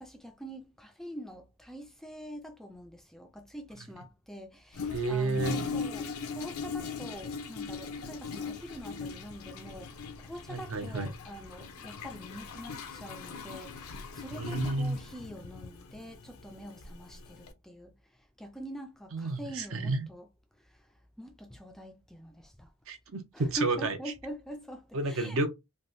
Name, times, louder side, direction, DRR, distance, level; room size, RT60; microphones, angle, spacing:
voice 1, 0.0-18.0 18.4-20.3 20.6-20.8 21.2-22.7 23.3-25.4, equal, ahead, 0.3 m, -44 dB
Toilet flush, 4.7-17.5, left 5 dB, 90° left, 0.6 m, -40 dB
voice 2, 4.9-5.6 10.5-11.1 14.3-15.0 19.1-20.1 22.9-24.0 24.9-25.5, right 2 dB, 75° right, 0.7 m, -31 dB
3.4 x 2.4 x 2.5 m
head